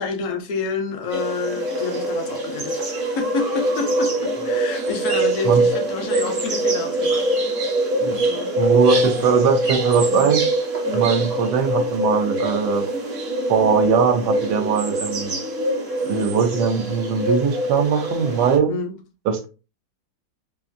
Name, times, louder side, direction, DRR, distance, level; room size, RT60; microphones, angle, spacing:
voice 1, 0.0-7.3 8.2-8.6 10.1-10.3 10.9-11.1 18.7-19.0, left 5 dB, 70° left, 0.8 m, -29 dB
sound 1, 1.1-18.6, right 2 dB, 50° right, 0.8 m, -23 dB
voice 2, 8.6-10.4 10.9-12.8 13.5-15.3 16.0-18.7 19.3-19.5, right 6 dB, 80° right, 1.2 m, -20 dB
3.0 x 2.4 x 2.5 m
omnidirectional pair, 1.8 m